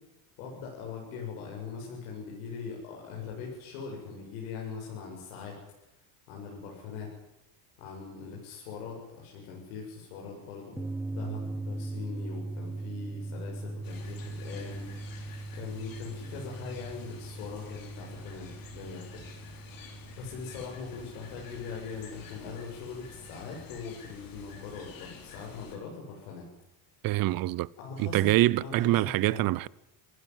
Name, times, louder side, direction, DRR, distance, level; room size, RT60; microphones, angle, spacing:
voice 1, 0.4-5.6 6.3-7.1 7.8-10.8 11.1-19.2 20.2-26.5 27.8-28.3 28.6-29.4, left 5 dB, 85° left, 7.6 m, -41 dB
sound 1, 10.8-23.7, right 2 dB, 5° right, 0.9 m, -40 dB
sound 2, 13.8-25.8, left 6 dB, 50° left, 4.8 m, -50 dB
voice 2, 27.0-27.7 28.0-29.7, right 17 dB, 55° right, 0.8 m, -25 dB
26.5 x 16.0 x 9.4 m
supercardioid pair, 110°, 42 cm